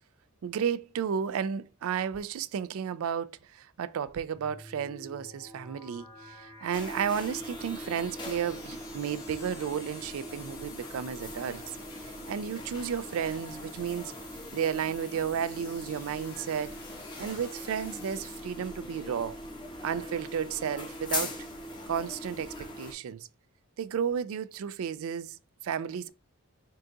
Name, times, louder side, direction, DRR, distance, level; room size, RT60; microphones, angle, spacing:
voice 1, 0.4-11.6 12.0-14.1 14.5-16.7 17.2-19.4 19.8-21.4 21.9-23.3 23.8-25.4 25.6-26.1, right 8 dB, 70° right, 0.3 m, -33 dB
sound 1, 4.3-18.4, left 3 dB, 45° left, 1.2 m, -51 dB
sound 2, 6.7-22.9, left 1 dB, 20° left, 0.7 m, -41 dB
3.8 x 2.3 x 3.7 m
head